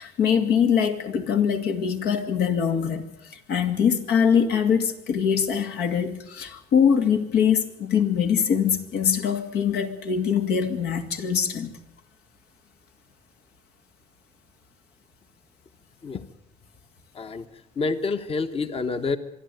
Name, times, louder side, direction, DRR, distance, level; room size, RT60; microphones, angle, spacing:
voice 1, 0.0-3.0 3.5-11.7, left 7 dB, 75° left, 6 dB, 2.5 m, -23 dB
voice 2, 17.8-19.2, left 4 dB, 35° left, 10 dB, 1.2 m, -27 dB
25.5 x 11.5 x 9.3 m, 0.81 s
cardioid pair, 110°, 17 cm